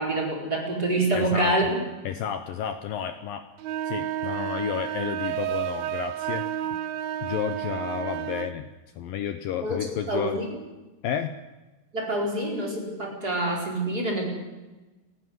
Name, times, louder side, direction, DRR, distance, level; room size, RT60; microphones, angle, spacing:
voice 1, 0.0-1.8 9.6-10.4 11.9-14.3, right 1 dB, 20° right, 1 dB, 4.8 m, -26 dB
voice 2, 1.2-1.5 2.1-3.4 3.8-6.8 7.2-8.7 9.0-10.4 11.0-11.4, left 9 dB, 90° left, 8 dB, 2.0 m, -31 dB
sound 1, 3.6-8.6, right 12 dB, 85° right, 3.4 m, -31 dB
29.5 x 12.5 x 9.6 m, 1.1 s
omnidirectional pair, 5.5 m